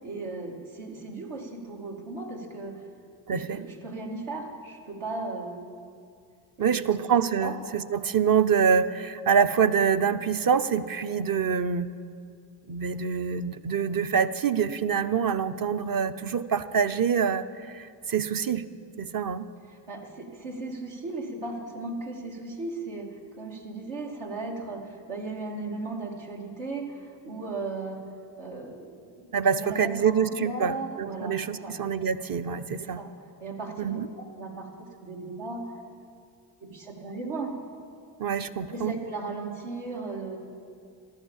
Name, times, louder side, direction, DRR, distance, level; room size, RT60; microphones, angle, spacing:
voice 1, 0.0-2.8 3.3-5.7 6.6-7.0 7.4-7.6 19.7-28.0 28.4-31.8 32.8-33.1 33.4-35.8 36.6-37.5 38.6-40.4, right 3 dB, 75° right, -1 dB, 2.7 m, -36 dB
voice 2, 3.3-3.6 6.6-11.9 12.7-18.6 19.0-19.5 29.3-33.0 33.8-34.1 38.2-39.0, right 7 dB, 45° right, 12 dB, 0.8 m, -25 dB
14.5 x 12.0 x 7.3 m, 2.3 s
supercardioid pair, 50°, 50 cm